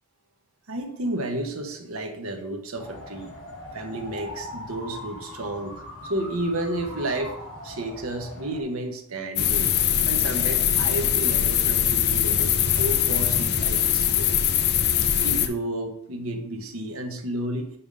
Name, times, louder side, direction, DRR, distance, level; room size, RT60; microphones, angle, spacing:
voice 1, 0.7-3.4 3.7-7.4 7.6-9.8 10.1-14.4 15.2-17.7, right 1 dB, 70° right, 5 dB, 1.0 m, -31 dB
sound 1, 2.8-8.6, left 1 dB, 75° left, 2.7 m, -40 dB
sound 2, 9.4-15.5, left 9 dB, 50° left, 0.5 m, -22 dB
5.6 x 5.2 x 5.3 m, 0.78 s
head